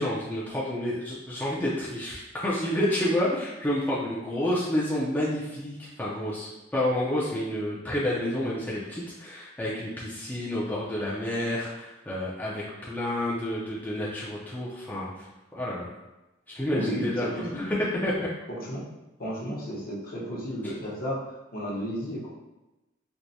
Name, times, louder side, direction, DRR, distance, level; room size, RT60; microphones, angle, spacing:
voice 1, 0.0-15.3 15.5-15.9 16.5-17.8 18.0-18.3, left 1 dB, 10° left, -7 dB, 0.4 m, -29 dB
voice 2, 16.7-17.7 18.5-18.9 19.2-22.3, equal, 50° left, -6 dB, 0.9 m, -33 dB
4.5 x 2.1 x 2.7 m, 1.0 s
head